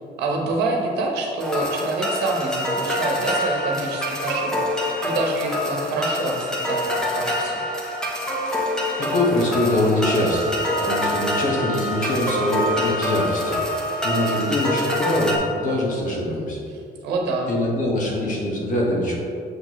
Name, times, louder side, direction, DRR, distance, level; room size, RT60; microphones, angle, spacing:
voice 1, 0.2-7.6 16.7-17.5, right 3 dB, 80° right, 0 dB, 1.1 m, -26 dB
sound 1, 1.4-15.4, left 1 dB, 5° left, 1.0 m, -26 dB
voice 2, 9.0-13.6 14.0-16.6 17.5-19.2, left 1 dB, 50° left, -2 dB, 1.5 m, -23 dB
Wind instrument woodwind instrument, 9.9-14.5, right 2 dB, 40° right, 1.3 m, -31 dB
7.3 x 4.1 x 3.1 m, 2.5 s
cardioid pair, 110°, 17 cm